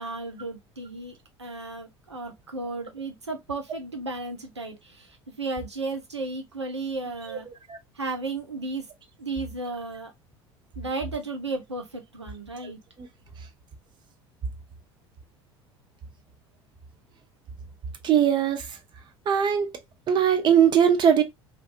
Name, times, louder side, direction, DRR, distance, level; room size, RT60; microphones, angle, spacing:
voice 1, 0.0-7.5 7.9-8.9 9.2-10.1 10.8-12.8, right 3 dB, 90° right, 0.5 m, -34 dB
voice 2, 18.0-18.7 19.3-19.7 20.1-21.2, right 8 dB, 35° right, 0.6 m, -20 dB
2.6 x 2.4 x 2.4 m
figure-of-eight pair, 65°, 14 cm